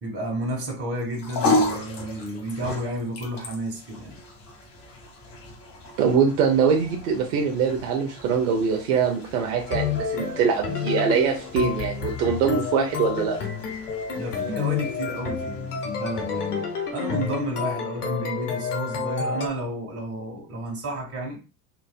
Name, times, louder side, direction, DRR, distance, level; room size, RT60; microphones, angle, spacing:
voice 1, 0.0-4.2 14.1-21.4, right 1 dB, 30° right, 1.7 m, -31 dB
sound 1, 1.0-17.5, left 2 dB, 50° left, 1.6 m, -34 dB
voice 2, 6.0-13.4, right 6 dB, 75° right, 0.8 m, -23 dB
sound 2, 9.7-19.5, left 6 dB, 90° left, 1.0 m, -30 dB
4.2 x 2.5 x 2.2 m
hypercardioid pair, 85°, 45 cm